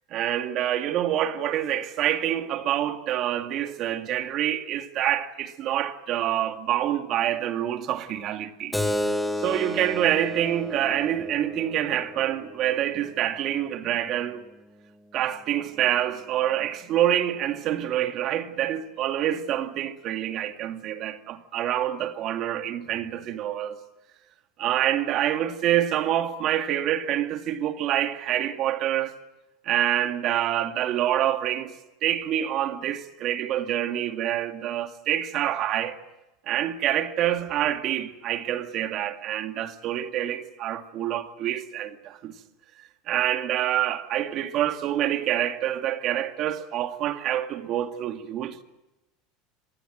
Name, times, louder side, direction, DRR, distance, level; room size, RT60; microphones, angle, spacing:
voice 1, 0.1-8.8 9.4-14.4 15.1-23.8 24.6-29.1 29.6-31.7 32.0-36.0 36.5-42.3 43.1-48.6, right 12 dB, 50° right, 2.2 m, -26 dB
Keyboard (musical), 8.7-13.8, left 1 dB, 5° left, 2.3 m, -32 dB
26.0 x 19.5 x 7.9 m
hypercardioid pair, 100°, 0 cm